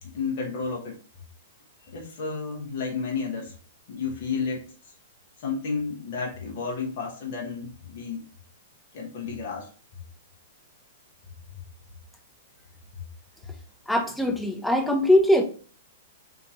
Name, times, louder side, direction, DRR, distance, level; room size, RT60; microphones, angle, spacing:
voice 1, 0.0-0.9 1.9-3.5 3.9-4.7 5.4-8.2 8.9-9.7, left 5 dB, 55° left, -1 dB, 1.2 m, -31 dB
voice 2, 13.9-15.4, left 1 dB, 5° left, 3 dB, 0.9 m, -21 dB
3.7 x 2.8 x 3.7 m, 0.40 s
hypercardioid pair, 120°, 0 cm